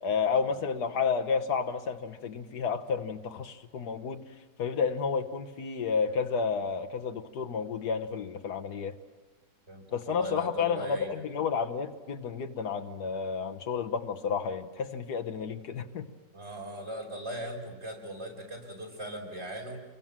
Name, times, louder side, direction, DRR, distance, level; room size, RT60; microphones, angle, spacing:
voice 1, 0.0-4.2 4.6-9.0 9.9-16.1, left 5 dB, 70° left, 6 dB, 1.6 m, -31 dB
voice 2, 9.7-11.2 16.3-19.8, right 1 dB, 40° right, 0 dB, 5.4 m, -39 dB
28.5 x 22.5 x 7.4 m, 1.2 s
omnidirectional pair, 1.8 m